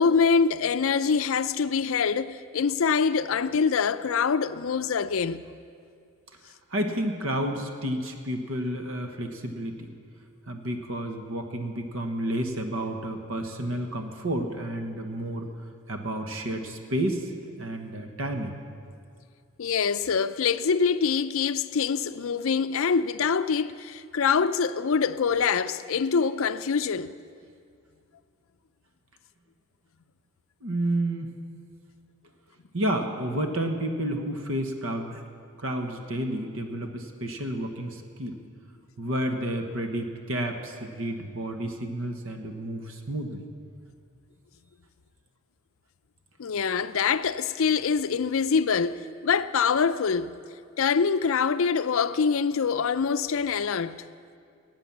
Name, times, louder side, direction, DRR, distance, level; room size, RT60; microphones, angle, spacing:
voice 1, 0.0-5.4 19.6-27.1 46.4-50.3 50.8-54.1, left 6 dB, 65° left, 0.5 m, -25 dB
voice 2, 6.4-9.9 10.5-15.5 15.9-17.3 17.6-18.6 30.6-31.3 32.7-35.2 35.6-38.4 39.0-43.4, right 1 dB, 65° right, 1.2 m, -31 dB
17.0 x 9.0 x 7.3 m
head